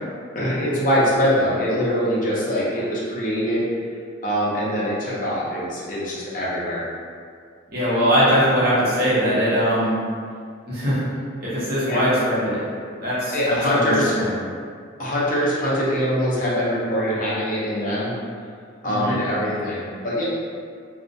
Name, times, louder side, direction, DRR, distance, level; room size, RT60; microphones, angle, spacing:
voice 1, 0.3-3.6 4.2-6.8 11.9-12.1 13.3-14.2 15.0-18.1 18.8-20.2, equal, 40° left, -7 dB, 0.5 m, -23 dB
voice 2, 7.7-10.0 10.7-11.0 11.4-12.6 13.0-14.3 18.8-19.1, equal, 50° right, -9 dB, 0.7 m, -21 dB
2.4 x 2.1 x 2.5 m, 2.1 s
head